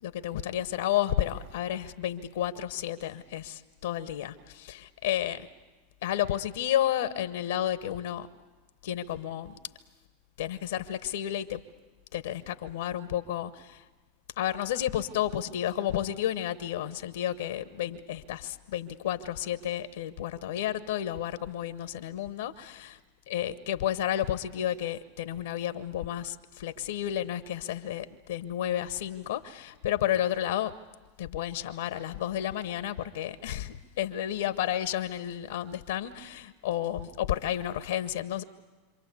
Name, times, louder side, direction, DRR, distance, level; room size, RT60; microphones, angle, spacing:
voice 1, 0.0-5.5 6.0-8.3 8.8-9.5 10.4-11.6 12.1-13.8 14.4-23.0 23.3-30.8 31.2-38.4, left 11 dB, 75° left, 11 dB, 1.0 m, -31 dB
27.0 x 26.0 x 8.3 m, 1.2 s
hypercardioid pair, 95°, 0 cm